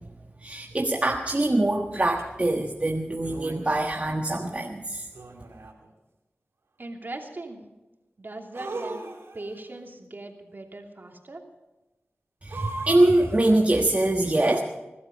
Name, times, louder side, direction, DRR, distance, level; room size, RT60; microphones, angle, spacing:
voice 1, 0.4-5.1 12.4-14.6, right 1 dB, 35° right, 1 dB, 1.4 m, -23 dB
sound 1, 2.2-2.3 3.2-3.9 5.1-5.9 8.5-9.6 12.5-13.6, right 3 dB, 85° right, 2.8 m, -38 dB
voice 2, 6.8-7.6 8.2-9.0 9.3-11.4, right 2 dB, 50° right, 2 dB, 2.8 m, -39 dB
21.5 x 12.0 x 5.2 m, 1.1 s
cardioid pair, 45°, 4 cm